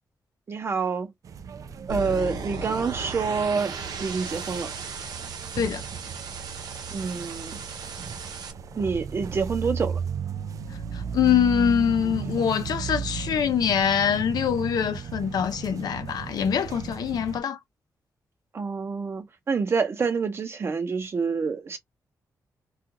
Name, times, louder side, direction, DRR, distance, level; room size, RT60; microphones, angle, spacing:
voice 1, 0.5-1.1 1.9-4.7 6.9-7.6 8.8-10.0 18.5-21.8, right 5 dB, 35° right, 0.7 m, -27 dB
sound 1, 1.2-17.4, right 6 dB, 55° right, 0.3 m, -35 dB
sound 2, 1.9-8.5, right 4 dB, 75° right, 0.7 m, -37 dB
voice 2, 10.9-17.6, left 8 dB, 75° left, 0.5 m, -24 dB
2.4 x 2.4 x 2.8 m
wide cardioid pair, 145°, 7 cm